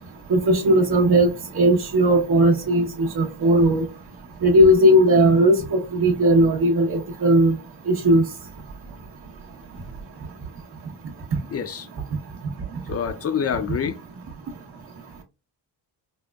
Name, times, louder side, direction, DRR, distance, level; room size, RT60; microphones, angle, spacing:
voice 1, 0.3-1.3 1.5-3.8 4.4-7.6 7.9-8.3, right 1 dB, 60° right, 1.0 m, -17 dB
voice 2, 11.5-11.9 12.9-14.0, left 7 dB, 35° left, 0.5 m, -26 dB
5.2 x 2.1 x 2.2 m
cardioid pair, 100°, 43 cm